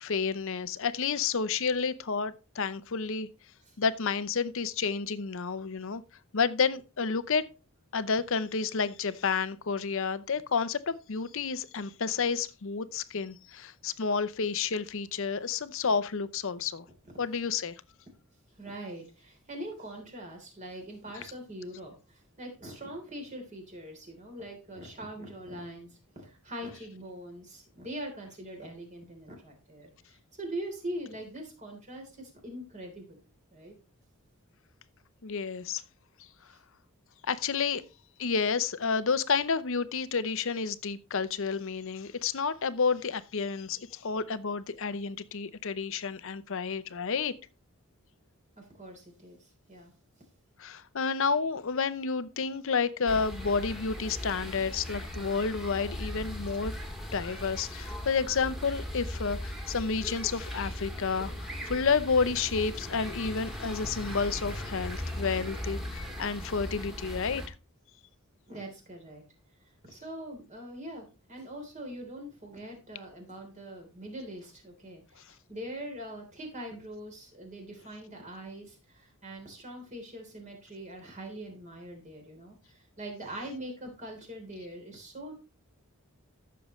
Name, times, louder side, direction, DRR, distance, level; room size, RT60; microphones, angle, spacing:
voice 1, 0.0-3.3 3.8-6.0 6.3-7.5 7.9-16.8 17.2-17.7 35.2-35.8 37.3-37.8 38.2-47.3 50.6-56.7 57.1-67.4, left 5 dB, 60° left, 0.7 m, -30 dB
voice 2, 18.6-33.2 33.5-33.7 36.5-36.6 48.6-49.9 68.5-69.2 69.9-85.3, right 1 dB, 35° right, 3.3 m, -42 dB
sound 1, 53.1-67.5, equal, ahead, 2.2 m, -38 dB
14.0 x 6.9 x 3.1 m
head